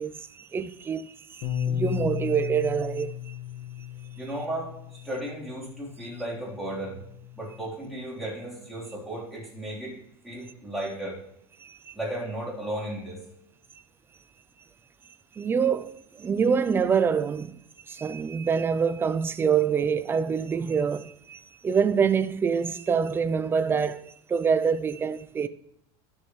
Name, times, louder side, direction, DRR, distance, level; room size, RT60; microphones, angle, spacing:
voice 1, 0.0-3.3 11.6-11.9 15.4-17.6 17.9-25.5, right 6 dB, 15° right, 0.4 m, -26 dB
Bass guitar, 1.4-7.7, left 10 dB, 65° left, 1.6 m, -35 dB
voice 2, 4.2-7.0 7.4-10.0 10.2-11.2 11.9-13.2, right 1 dB, ahead, 3.7 m, -35 dB
11.5 x 7.1 x 3.2 m
supercardioid pair, 145°, 14 cm